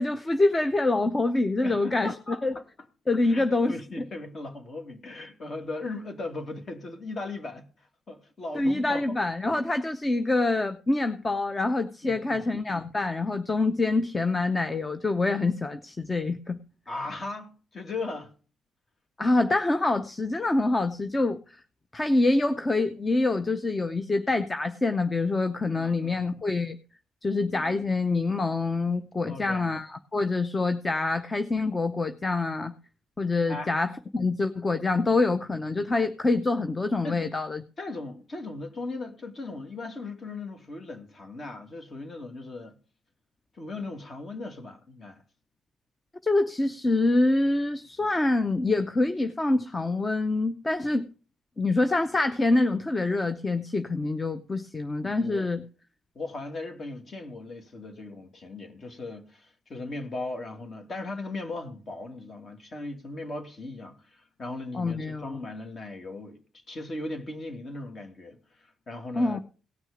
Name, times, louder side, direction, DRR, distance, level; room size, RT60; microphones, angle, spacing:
voice 1, 0.0-2.1 2.4-2.5 3.1-3.8 8.5-16.6 19.2-21.4 21.9-26.8 27.2-32.7 33.2-37.6 46.2-51.1 51.6-55.6 64.7-65.3 69.1-69.4, left 2 dB, 25° left, 0.7 m, -26 dB
voice 2, 1.6-2.6 3.2-9.2 12.0-12.5 16.9-18.3 25.8-26.2 29.2-29.8 33.5-33.7 37.0-37.3 37.8-42.8 43.6-45.2 55.0-55.5 56.1-66.4 66.7-69.4, left 2 dB, 40° left, 2.4 m, -38 dB
18.0 x 6.3 x 5.0 m
cardioid pair, 90°, 0 cm